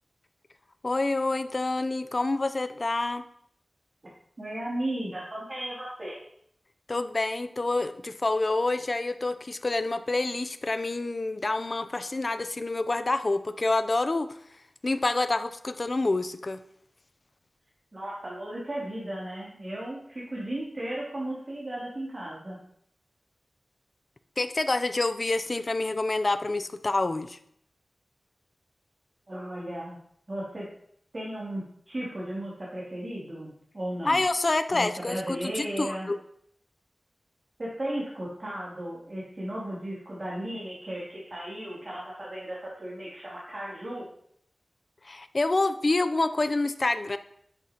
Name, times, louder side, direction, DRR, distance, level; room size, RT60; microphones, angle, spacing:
voice 1, 0.8-3.2 6.9-14.4 14.8-16.6 24.4-27.4 34.0-36.2 45.0-47.2, left 2 dB, 55° left, 11 dB, 0.6 m, -27 dB
voice 2, 4.4-6.2 17.9-22.6 29.3-30.0 30.3-30.7 31.1-34.2 34.7-36.1 37.6-44.1, right 1 dB, 50° right, -7 dB, 3.0 m, -35 dB
10.5 x 7.3 x 3.0 m, 0.70 s
cardioid pair, 45°, 0 cm